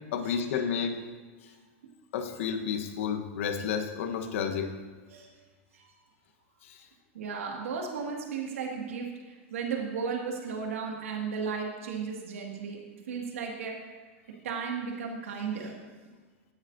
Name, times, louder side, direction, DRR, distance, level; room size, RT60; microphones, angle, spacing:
voice 1, 0.1-1.0 2.1-4.7 6.7-6.8, left 7 dB, 70° left, 6 dB, 1.2 m, -31 dB
voice 2, 7.1-13.8 14.4-15.8, right 5 dB, 85° right, 0 dB, 2.1 m, -35 dB
16.0 x 10.0 x 2.7 m, 1.4 s
hypercardioid pair, 115°, 7 cm